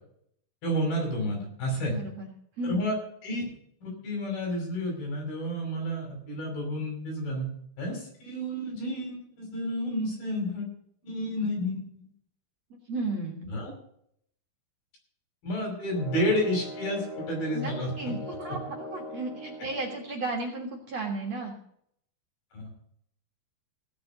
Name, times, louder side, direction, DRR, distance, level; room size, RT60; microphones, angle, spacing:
voice 1, 0.6-2.0 2.6-3.0 3.2-3.4 3.8-7.5 7.8-10.7 11.0-12.1 13.5-13.7 15.4-18.2 22.5-22.7, equal, 65° left, 1 dB, 7.3 m, -30 dB
voice 2, 1.9-2.3 2.6-2.8 12.9-13.5 17.5-21.5, right 2 dB, 50° right, 1 dB, 2.3 m, -34 dB
sound 1, 15.9-20.1, left 1 dB, 25° left, 3.7 m, -41 dB
16.5 x 6.8 x 8.0 m, 0.69 s
omnidirectional pair, 4.6 m